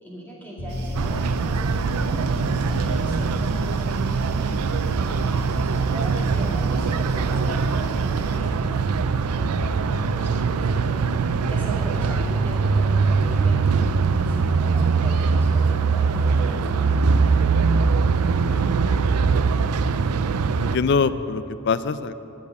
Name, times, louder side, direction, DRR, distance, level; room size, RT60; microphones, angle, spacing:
voice 1, 0.0-17.1, equal, 10° left, -5 dB, 2.3 m, -39 dB
Piano, 0.6-17.3, left 1 dB, 75° left, 1.7 m, -37 dB
sound 1, 0.7-8.4, right 2 dB, 45° right, 0.9 m, -40 dB
sound 2, 0.9-20.8, right 5 dB, 90° right, 0.4 m, -22 dB
voice 2, 18.4-19.5 20.6-22.1, left 5 dB, 50° left, 14 dB, 0.4 m, -25 dB
10.5 x 6.8 x 8.5 m, 2.9 s
head